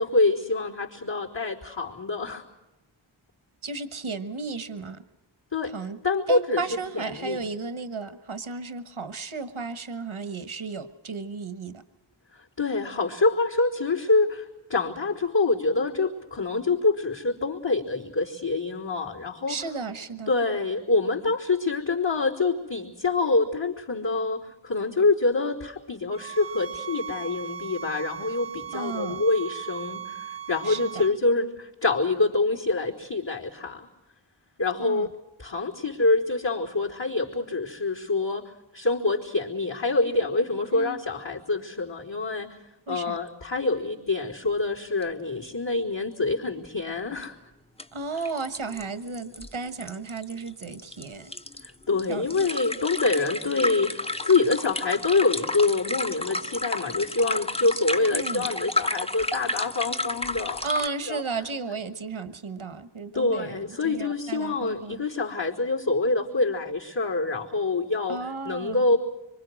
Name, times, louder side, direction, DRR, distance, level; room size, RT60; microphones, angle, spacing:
voice 1, 0.0-2.5 5.5-5.7 6.0-7.4 12.3-19.6 20.3-33.9 34.6-35.1 35.4-38.4 38.7-42.6 42.9-47.3 51.6-60.6 61.1-61.2 63.1-69.0, left 3 dB, 65° left, -9 dB, 4.1 m, -26 dB
voice 2, 3.6-5.0 5.6-6.0 6.3-11.8 19.5-20.3 28.7-29.2 30.6-31.0 34.8-35.1 40.7-41.0 42.9-43.2 47.9-51.3 52.1-52.5 58.1-58.5 60.6-65.1 68.1-68.8, right 4 dB, 85° right, 11 dB, 1.3 m, -34 dB
sound 1, 26.1-31.1, right 8 dB, 60° right, 0.8 m, -37 dB
sound 2, 45.0-45.1 45.4-45.5 47.2-47.3 47.8-47.9 48.2-60.9, left 2 dB, 10° left, 0.8 m, -32 dB
25.5 x 24.5 x 6.3 m, 1.0 s
wide cardioid pair, 40°, 47 cm